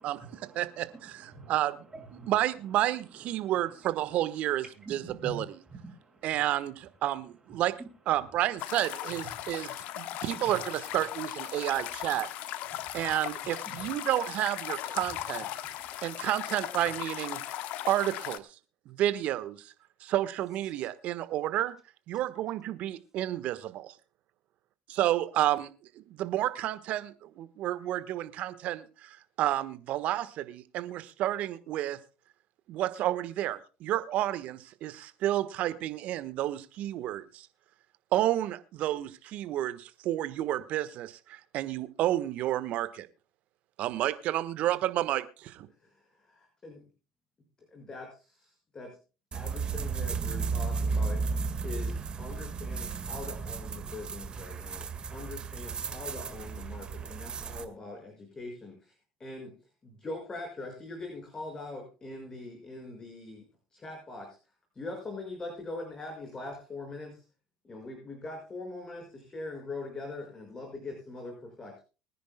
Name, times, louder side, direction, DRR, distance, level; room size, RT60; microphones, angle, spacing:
voice 1, 0.0-2.3 2.8-4.1 4.8-5.4 5.6-6.4 7.5-7.9 9.1-10.6 12.5-13.1 13.6-13.9 15.5-16.3 17.4-17.5, right 3 dB, 20° right, 6.3 m, -49 dB
voice 2, 0.5-1.7 2.3-4.6 4.9-5.4 6.2-7.7 8.1-12.3 12.9-15.5 16.0-17.4 17.9-18.4 18.9-19.6 20.0-21.7 22.1-23.9 24.9-25.7 26.1-32.0 32.7-37.5 38.1-43.1 43.8-45.7, right 13 dB, 60° right, 1.3 m, -30 dB
sound 1, 8.6-18.4, left 13 dB, 60° left, 1.1 m, -38 dB
voice 3, 46.2-46.8 47.7-49.0 49.3-51.2 51.6-58.9 59.2-59.6 59.8-63.5 63.7-64.4 64.7-67.2 67.6-71.8, left 2 dB, 25° left, 6.0 m, -42 dB
sound 2, 49.3-57.6, right 4 dB, 35° right, 1.8 m, -34 dB
24.5 x 10.0 x 2.2 m
hypercardioid pair, 70°, 3 cm